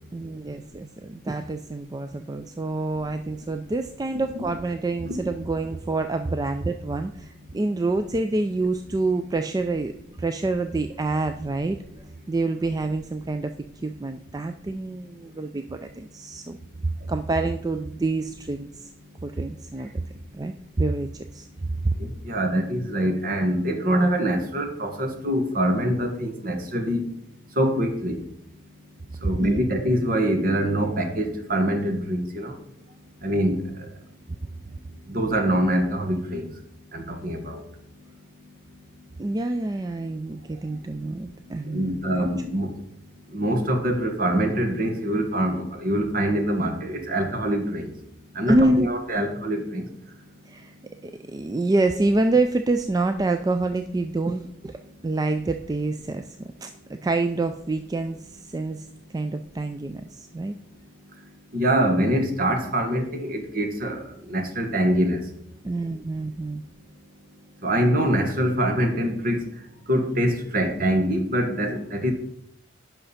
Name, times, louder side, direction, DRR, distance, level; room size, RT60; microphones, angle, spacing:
voice 1, 0.1-11.8 12.3-13.5 13.8-16.6 16.8-18.9 19.2-20.0 20.3-21.5 21.8-21.9 29.4-29.6 39.2-42.3 48.5-48.9 50.5-50.7 51.0-58.9 59.1-60.6 65.6-66.6, right 2 dB, 20° right, 7 dB, 0.3 m, -27 dB
voice 2, 22.0-27.1 27.5-28.2 29.2-32.6 33.2-33.9 35.1-36.5 36.9-37.6 41.6-42.8 43.3-47.9 48.3-49.8 61.5-65.3 67.6-69.5 69.9-72.1, right 1 dB, 50° right, 5 dB, 1.3 m, -24 dB
10.5 x 5.6 x 4.2 m, 0.71 s
head